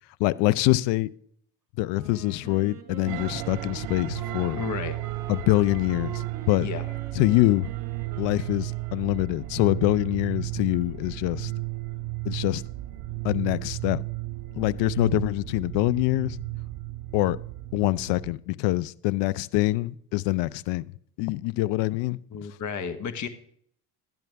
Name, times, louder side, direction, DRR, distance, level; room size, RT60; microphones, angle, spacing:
voice 1, 0.2-1.1 1.8-4.6 5.3-6.7 7.2-7.7 8.2-11.5 12.3-12.6 13.2-14.0 14.5-16.4 17.1-17.4 17.7-20.9 21.2-22.2, left 19 dB, 65° left, 0.6 m, -25 dB
Wind instrument woodwind instrument, 1.9-9.7, right 6 dB, 35° right, 2.5 m, -44 dB
sound 1, 3.1-18.3, right 18 dB, 65° right, 0.6 m, -34 dB
voice 2, 4.6-4.9 6.6-6.8 22.3-23.3, left 6 dB, 40° left, 1.2 m, -32 dB
12.0 x 10.5 x 3.4 m
hypercardioid pair, 75°, 46 cm